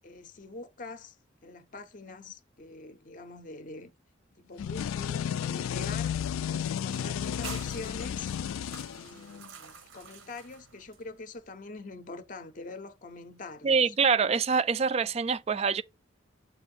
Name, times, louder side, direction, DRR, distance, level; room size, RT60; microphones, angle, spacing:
voice 1, 0.0-1.2 1.4-3.9 4.4-6.2 6.5-8.3 8.9-13.9, left 3 dB, 40° left, 0.6 m, -44 dB
sound 1, 4.6-9.5, left 9 dB, 85° left, 0.3 m, -33 dB
sound 2, 6.8-11.4, right 6 dB, 80° right, 1.0 m, -48 dB
voice 2, 13.6-15.8, right 5 dB, 30° right, 0.3 m, -25 dB
7.1 x 2.5 x 5.4 m
head